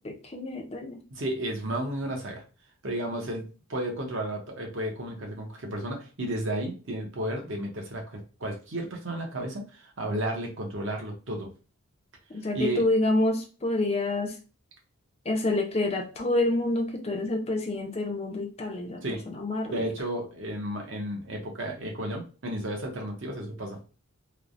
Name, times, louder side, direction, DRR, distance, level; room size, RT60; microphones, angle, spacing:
voice 1, 0.0-1.0 12.3-14.4 15.3-19.9, left 2 dB, 25° left, 3 dB, 0.4 m, -28 dB
voice 2, 1.1-2.4 2.8-11.5 12.5-12.8 19.0-19.2 19.7-23.8, right 1 dB, 55° right, 1 dB, 0.8 m, -33 dB
3.1 x 2.0 x 2.5 m, 0.35 s
head